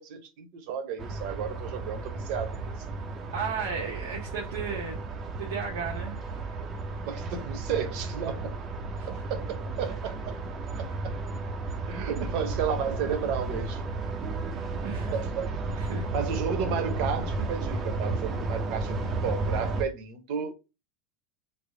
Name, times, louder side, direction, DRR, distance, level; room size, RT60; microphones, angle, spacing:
voice 1, 0.0-2.7 7.0-8.5 9.3-10.3 11.0-11.1 11.9-13.8 15.1-15.5 15.9-20.6, right 7 dB, 55° right, 0.8 m, -33 dB
sound 1, 1.0-19.8, right 3 dB, 25° right, 0.5 m, -33 dB
voice 2, 3.3-5.0 5.4-6.2 9.0-9.1 12.2-12.3 14.8-15.2 15.8-16.1, right 6 dB, 90° right, 0.7 m, -34 dB
3.3 x 2.0 x 3.7 m
supercardioid pair, 150°, 0 cm